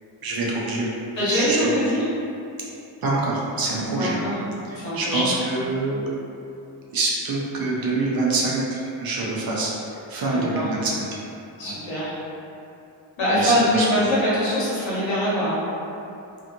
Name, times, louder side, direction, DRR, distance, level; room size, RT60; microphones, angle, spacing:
voice 1, 0.2-0.9 1.3-1.8 3.0-4.2 4.7-6.2 6.9-11.2 11.6-11.7 13.3-14.0, right 2 dB, 55° right, -4 dB, 0.6 m, -25 dB
voice 2, 1.2-2.0 4.0-4.3 4.8-5.3 10.3-10.6 11.6-12.1 13.2-15.6, equal, 85° left, -10 dB, 1.2 m, -23 dB
2.6 x 2.4 x 2.6 m, 2.7 s
wide cardioid pair, 140°, 44 cm